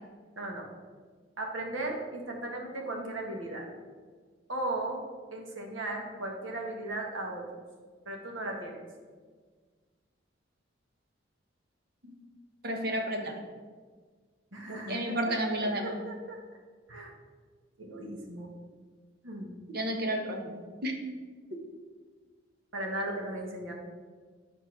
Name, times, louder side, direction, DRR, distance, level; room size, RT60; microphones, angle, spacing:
voice 1, 0.3-0.7 1.4-3.7 4.5-5.0 5.3-7.6 8.0-8.9 14.5-15.3 15.6-16.4 16.9-17.1 17.8-18.5 19.2-19.6 22.7-23.7, right 1 dB, 80° right, 0 dB, 1.7 m, -36 dB
voice 2, 12.6-13.4 14.9-16.0 19.7-20.9, right 1 dB, 50° right, 3 dB, 1.3 m, -31 dB
9.5 x 4.4 x 6.1 m, 1.5 s
head